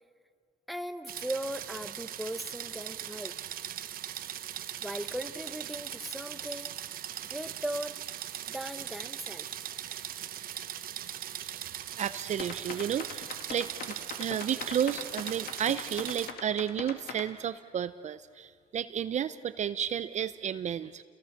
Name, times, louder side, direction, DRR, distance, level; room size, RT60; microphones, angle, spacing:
voice 1, 0.7-3.4 4.8-6.8 7.3-8.0 8.5-9.6, right 1 dB, ahead, 9 dB, 0.9 m, -38 dB
sound 1, 1.1-16.3, right 11 dB, 60° right, 1.0 m, -40 dB
voice 2, 12.0-21.0, right 9 dB, 45° right, 13 dB, 0.6 m, -32 dB
sound 2, 12.4-17.3, left 6 dB, 65° left, 2.3 m, -41 dB
28.5 x 21.5 x 6.6 m, 2.1 s
cardioid pair, 110°, 17 cm